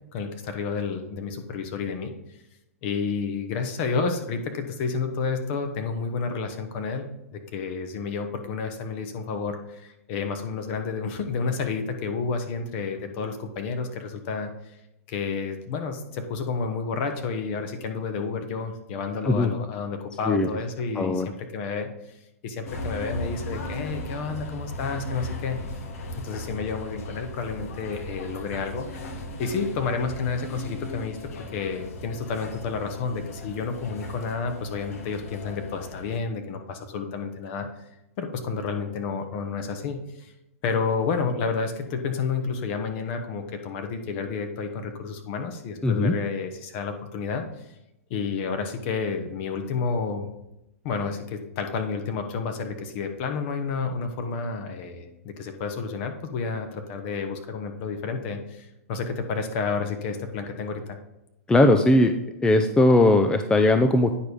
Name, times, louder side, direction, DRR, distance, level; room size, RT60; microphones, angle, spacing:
voice 1, 0.1-2.1 2.8-14.7 15.1-25.6 26.2-28.9 29.4-31.2 31.5-37.7 38.2-40.3 40.6-47.7 48.1-50.3 50.8-61.0, left 5 dB, 50° left, 6 dB, 1.3 m, -30 dB
voice 2, 21.0-21.3 45.8-46.2 61.5-62.1 62.4-64.1, left 2 dB, 10° left, 7 dB, 0.5 m, -19 dB
sound 1, 22.7-36.2, left 1 dB, 65° left, 1.3 m, -37 dB
9.3 x 4.7 x 5.2 m, 0.90 s
hypercardioid pair, 115°, 8 cm